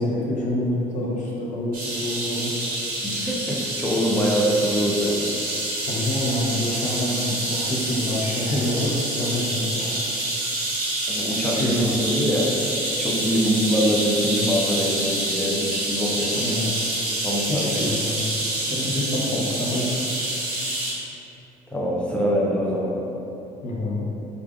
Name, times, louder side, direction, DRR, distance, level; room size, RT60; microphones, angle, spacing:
voice 1, 0.0-2.6 5.9-10.0 11.4-11.9 16.4-16.7 17.5-18.2 18.7-19.9 23.6-24.1, left 1 dB, 50° left, -4 dB, 0.8 m, -27 dB
sound 1, 1.7-20.9, right 1 dB, 55° right, 1.1 m, -27 dB
voice 2, 3.0-5.2 11.1-12.5 13.0-16.5 17.2-17.7 21.7-23.0, equal, 5° left, -4 dB, 0.6 m, -24 dB
4.9 x 2.5 x 2.4 m, 2.9 s
cardioid pair, 110°, 17 cm